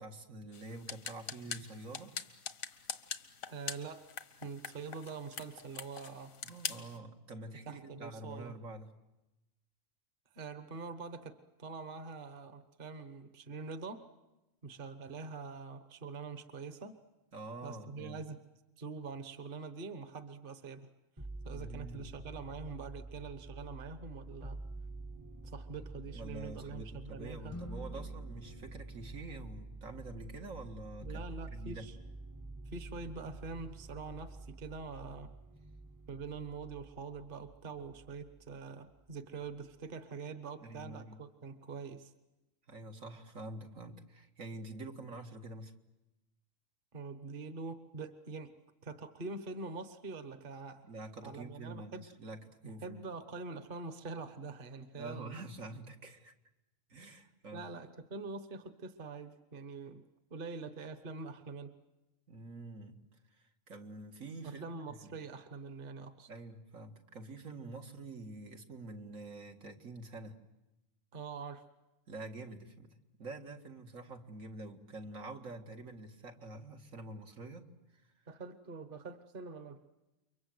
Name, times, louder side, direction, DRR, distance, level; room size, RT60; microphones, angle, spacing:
voice 1, 0.0-2.1 6.4-8.9 17.3-18.2 21.4-22.1 26.1-31.9 40.6-41.2 42.7-45.7 50.8-53.1 55.0-56.3 56.9-57.7 62.3-63.0 63.4-65.2 66.3-70.4 72.1-77.7 77.9-78.0, right 2 dB, 75° right, 3 dB, 2.3 m, -47 dB
sound 1, 0.5-7.0, left 7 dB, 80° left, 1.5 m, -44 dB
voice 2, 3.5-4.1 4.4-6.3 7.7-8.5 10.3-14.0 14.6-16.9 17.6-18.4 18.8-20.9 21.4-24.6 25.4-27.6 27.9-28.1 31.0-32.0 32.7-35.3 36.1-42.1 46.9-48.5 48.8-50.8 51.2-52.0 52.6-55.4 57.5-60.0 60.3-61.7 64.4-66.3 71.1-71.6 78.3-79.8, right 4 dB, 40° right, 9 dB, 1.4 m, -44 dB
sound 2, 21.2-38.6 38.9-39.7, right 2 dB, 15° right, 0.7 m, -48 dB
sound 3, 27.5-29.9, left 1 dB, 15° left, 0.7 m, -51 dB
29.5 x 24.0 x 7.9 m, 0.99 s
omnidirectional pair, 1.4 m